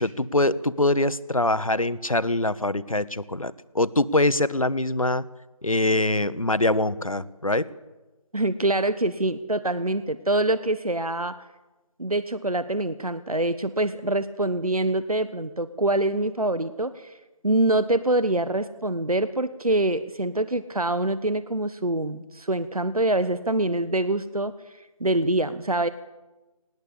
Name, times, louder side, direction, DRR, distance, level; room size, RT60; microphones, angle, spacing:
voice 1, 0.0-5.2 5.6-7.7, left 2 dB, 65° left, 17 dB, 1.1 m, -23 dB
voice 2, 8.3-11.3 12.0-17.2 17.4-25.9, right 2 dB, 75° right, 13 dB, 1.2 m, -25 dB
19.5 x 19.0 x 8.5 m, 1.1 s
figure-of-eight pair, 175°, 19 cm